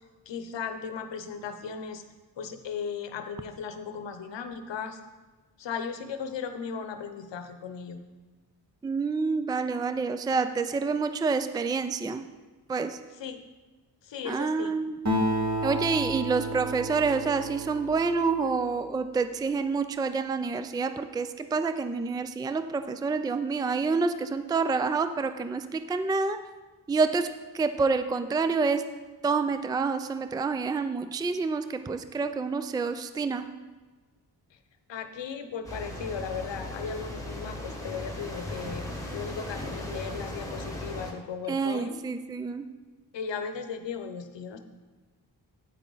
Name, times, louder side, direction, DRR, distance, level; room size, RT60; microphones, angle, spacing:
voice 1, 0.3-2.0 2.4-5.0 5.6-8.0 13.2-13.4 14.0-14.8 34.9-38.8 39.1-42.0 43.1-44.6, left 6 dB, 90° left, 8 dB, 0.9 m, -36 dB
voice 2, 8.8-12.3 12.7-13.0 14.2-15.0 15.6-26.4 26.9-27.3 27.5-28.9 29.2-33.5 41.5-42.6, right 4 dB, 10° right, 10 dB, 0.3 m, -28 dB
Acoustic guitar, 15.1-18.9, right 1 dB, 40° right, 1.5 m, -31 dB
sound 1, 35.6-41.1, left 1 dB, 10° left, 1.6 m, -37 dB
8.9 x 8.4 x 4.0 m, 1.3 s
wide cardioid pair, 100°, 42 cm